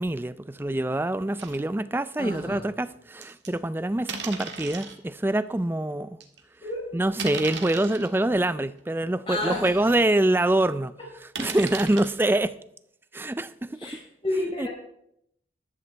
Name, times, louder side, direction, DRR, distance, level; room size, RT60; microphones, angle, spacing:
voice 1, 0.0-6.2 6.9-10.9 11.4-12.6 13.1-13.9 14.6-14.7, right 1 dB, 10° right, 0.3 m, -25 dB
sound 1, 1.4-1.6 2.2-2.3 3.2-3.5 4.1-5.0 5.6-5.7 6.2-6.4 7.2-8.1 8.8-8.9 9.4-9.5 9.7-9.8 11.4-12.1, right 5 dB, 70° right, 1.6 m, -36 dB
voice 2, 2.2-2.7 6.6-7.0 9.3-9.9 11.0-11.1 13.7-14.7, left 1 dB, 30° left, 4.6 m, -31 dB
14.5 x 12.0 x 3.4 m
head